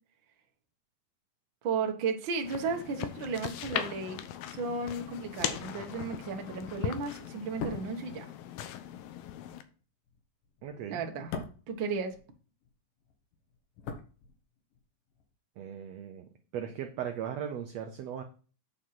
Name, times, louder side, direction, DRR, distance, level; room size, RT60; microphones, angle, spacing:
voice 1, 1.6-8.3 10.9-11.3 11.7-12.1, right 5 dB, 55° right, 3 dB, 1.4 m, -34 dB
sound 1, 2.4-9.6, left 11 dB, 85° left, 2.7 m, -39 dB
sound 2, 7.4-12.7 13.0-14.8 15.1-15.3, left 5 dB, 70° left, 2.7 m, -43 dB
voice 2, 10.6-11.0 15.6-16.2 16.5-18.2, right 9 dB, 75° right, 5 dB, 1.5 m, -37 dB
9.1 x 5.1 x 5.9 m, 0.38 s
omnidirectional pair, 4.1 m